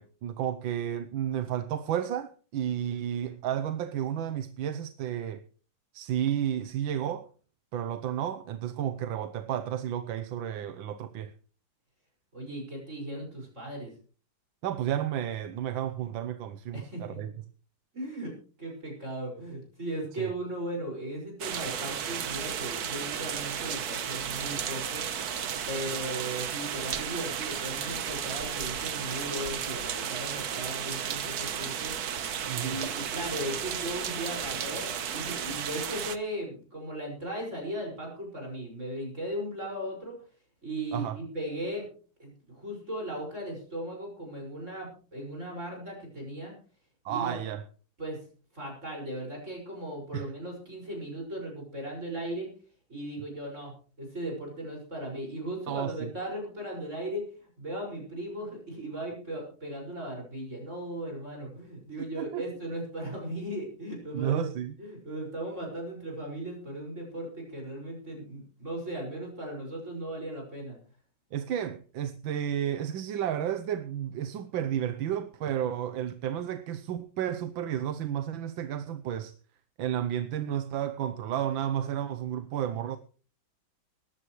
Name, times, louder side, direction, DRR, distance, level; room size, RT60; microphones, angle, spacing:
voice 1, 0.0-5.4 5.9-7.3 7.7-11.3 14.6-17.3 20.2-20.3 32.5-32.8 40.9-41.2 47.1-47.6 50.1-50.3 55.7-56.1 62.0-62.4 64.1-64.8 71.3-79.3 79.8-83.0, right 10 dB, 80° right, 1.6 m, -32 dB
voice 2, 12.3-13.9 16.7-17.3 17.9-18.3 18.6-25.1 25.7-31.9 32.5-40.2 40.6-41.9 42.2-46.5 47.1-47.4 48.0-48.2 48.5-52.5 52.9-57.2 57.6-64.5 64.8-70.8, right 1 dB, 35° right, 6.1 m, -37 dB
sound 1, 21.4-36.2, right 8 dB, 55° right, 1.4 m, -34 dB
19.0 x 15.0 x 3.2 m
omnidirectional pair, 2.2 m